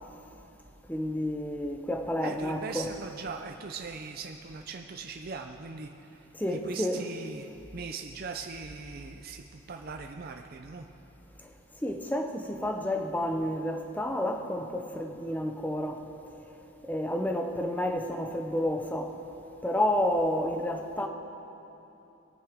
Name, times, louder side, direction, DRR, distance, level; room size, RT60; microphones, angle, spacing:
voice 1, 0.9-2.9 6.3-7.0 11.4-11.5 11.8-16.0 16.8-19.2 19.6-21.1, left 1 dB, 10° left, 4 dB, 0.7 m, -30 dB
voice 2, 2.2-10.9, right 4 dB, 45° right, 4 dB, 0.5 m, -40 dB
20.5 x 9.5 x 3.6 m, 3.0 s
head